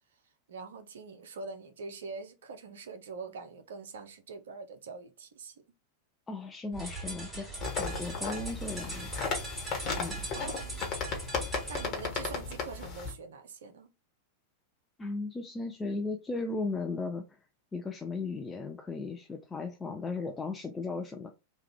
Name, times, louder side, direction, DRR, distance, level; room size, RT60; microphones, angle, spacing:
voice 1, 0.5-5.6 8.1-8.4 10.3-10.8 11.7-13.9, right 4 dB, 60° right, 0.5 m, -44 dB
voice 2, 6.3-9.3 10.0-10.3 15.0-17.5 17.7-21.3, left 3 dB, 15° left, 0.5 m, -36 dB
sound 1, 6.7-11.9, right 2 dB, 10° right, 1.6 m, -40 dB
sound 2, 7.6-13.1, left 5 dB, 35° left, 1.2 m, -35 dB
3.0 x 2.3 x 3.5 m
figure-of-eight pair, 90°, 0 cm